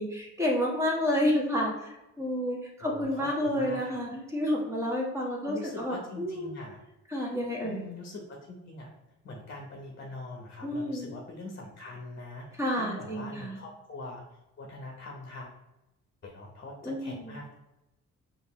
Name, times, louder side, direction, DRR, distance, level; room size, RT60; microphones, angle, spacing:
voice 1, 0.0-1.7 2.2-6.5 7.1-7.8 10.6-11.1 12.6-13.6 16.8-17.3, left 1 dB, 10° right, -3 dB, 1.3 m, -30 dB
voice 2, 2.8-4.0 5.4-6.8 7.6-8.9 9.2-15.5 16.2-17.5, left 2 dB, 40° left, 0 dB, 0.9 m, -43 dB
5.1 x 2.6 x 3.1 m, 0.95 s
cardioid pair, 90°, 30 cm